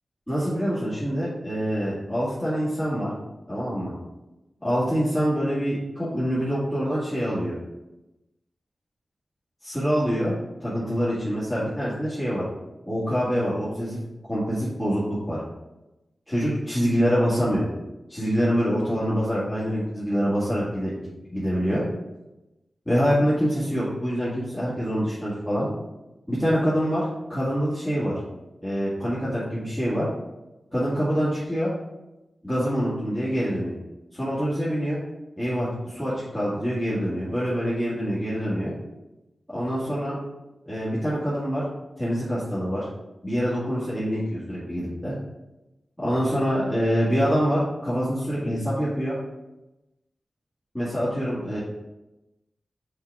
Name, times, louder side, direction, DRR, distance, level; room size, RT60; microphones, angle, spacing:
voice 1, 0.3-3.1 3.5-3.9 4.6-7.5 9.6-10.3 10.6-12.4 12.9-14.0 14.3-15.4 16.3-17.6 18.1-20.9 21.3-21.8 22.9-25.7 26.3-28.2 28.6-30.0 30.7-31.7 32.4-33.7 34.1-35.0 35.4-38.7 39.5-40.2 40.7-41.7 42.0-42.9 43.2-45.1 46.0-49.1 50.7-51.6, equal, 15° left, -11 dB, 2.2 m, -25 dB
6.2 x 3.9 x 4.8 m, 0.99 s
wide cardioid pair, 90°, 0 cm